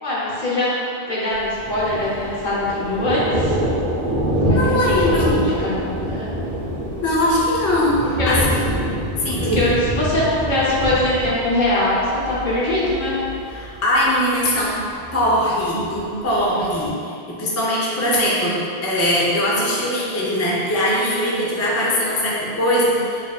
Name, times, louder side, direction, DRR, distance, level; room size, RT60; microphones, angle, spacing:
voice 1, 0.0-3.6 4.4-6.5 8.2-8.5 9.5-13.2, left 1 dB, 50° left, -7 dB, 0.9 m, -22 dB
Thunder, 1.3-16.9, equal, 55° right, 0.9 m, -26 dB
voice 2, 4.5-5.4 7.0-8.0 8.3-8.4 9.2-9.7 13.5-14.8 15.1-23.3, left 1 dB, 25° left, -5 dB, 0.3 m, -21 dB
5.2 x 2.7 x 2.3 m, 2.5 s
omnidirectional pair, 1.0 m